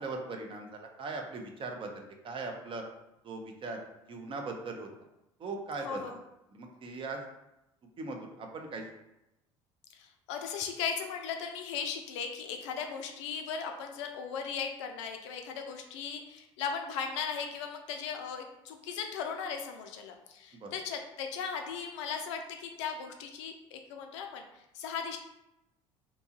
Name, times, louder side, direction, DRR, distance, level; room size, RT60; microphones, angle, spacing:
voice 1, 0.0-2.8 3.2-3.8 4.1-4.9 5.4-6.0 6.5-7.2 8.0-8.9 20.6-20.8, right 3 dB, 30° right, 3 dB, 0.5 m, -39 dB
voice 2, 5.8-6.2 9.9-24.4 24.7-25.2, left 6 dB, 65° left, 4 dB, 0.4 m, -37 dB
2.8 x 2.3 x 2.7 m, 0.89 s
figure-of-eight pair, 60°, 16 cm